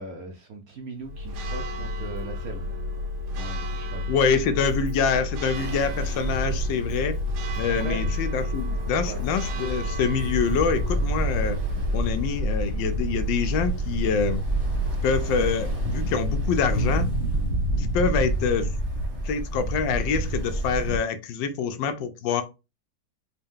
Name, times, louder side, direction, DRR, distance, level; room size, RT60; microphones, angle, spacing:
voice 1, 0.0-2.7 3.3-4.1 7.7-8.0 9.0-9.2, right 2 dB, 70° right, 0.9 m, -38 dB
Church bell, 1.0-18.3, left 2 dB, 85° right, 1.5 m, -32 dB
voice 2, 4.1-7.2 7.6-11.6 11.9-14.4 15.0-17.1 17.8-18.7 19.2-22.4, left 6 dB, 75° left, 1.2 m, -26 dB
Ocean, 5.5-21.0, right 1 dB, 25° right, 0.9 m, -29 dB
4.4 x 2.2 x 3.5 m
omnidirectional pair, 2.1 m